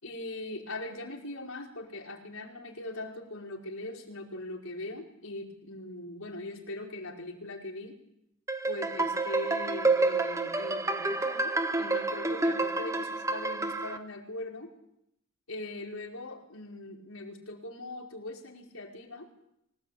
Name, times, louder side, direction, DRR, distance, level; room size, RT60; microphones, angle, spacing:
voice 1, 0.0-8.0 8.7-14.7 15.5-19.3, left 2 dB, 75° left, 0 dB, 5.3 m, -41 dB
sound 1, 8.5-14.0, right 3 dB, 15° right, 1.1 m, -29 dB
25.0 x 18.5 x 8.8 m, 0.78 s
head